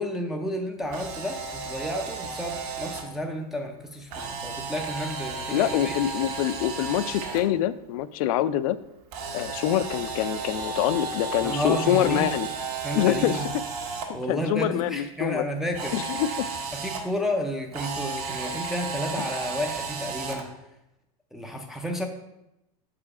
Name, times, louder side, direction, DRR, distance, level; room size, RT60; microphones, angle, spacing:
voice 1, 0.0-6.0 11.4-12.3 12.8-13.5 14.1-16.1 16.7-20.5 21.3-22.1, equal, ahead, 2 dB, 0.4 m, -31 dB
Camera, 0.8-3.0 4.1-7.4 9.1-14.0 15.7-17.0 17.7-20.4, right 4 dB, 75° right, 1.5 m, -33 dB
voice 2, 5.5-8.8 9.3-12.5 12.9-13.4 14.1-15.4 15.9-16.5, left 12 dB, 60° left, 15 dB, 0.4 m, -25 dB
6.3 x 5.0 x 4.8 m, 0.89 s
supercardioid pair, 150°, 20 cm